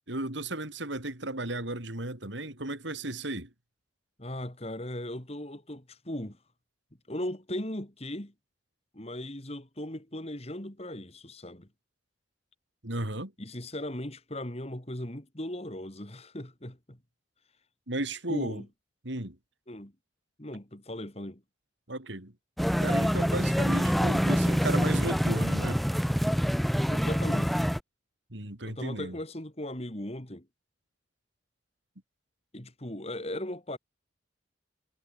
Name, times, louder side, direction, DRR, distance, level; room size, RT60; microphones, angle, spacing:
voice 1, 0.1-3.5 12.8-13.3 17.9-18.6 19.0-19.4 21.9-22.3 22.8-25.8 28.3-29.2, right 2 dB, 70° right, 4.0 m, -34 dB
voice 2, 4.2-6.4 7.1-8.3 8.9-11.7 13.4-17.0 18.3-18.7 19.7-19.9 20.4-21.4 26.9-27.6 28.6-30.5 32.5-33.8, left 1 dB, 30° left, 2.8 m, -38 dB
sound 1, 22.6-27.8, equal, ahead, 1.0 m, -26 dB
head